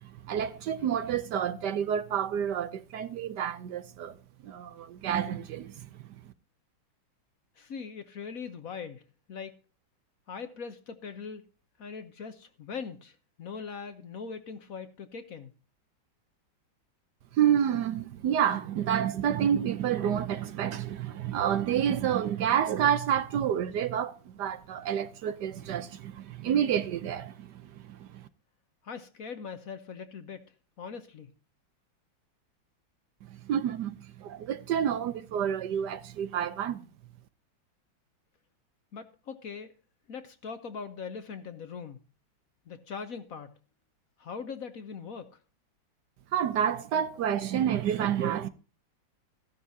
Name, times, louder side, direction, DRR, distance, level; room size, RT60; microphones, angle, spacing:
voice 1, 0.0-4.1 4.4-5.9 17.3-28.3 33.3-36.9 46.3-48.5, right 9 dB, 70° right, 1.2 m, -29 dB
voice 2, 7.6-9.0 9.3-9.5 10.3-11.4 11.8-15.5 28.8-30.4 30.8-31.3 38.9-39.7 40.1-42.0 42.7-43.6 44.2-45.3, left 5 dB, 55° left, 1.2 m, -41 dB
14.5 x 12.0 x 2.7 m
omnidirectional pair, 2.1 m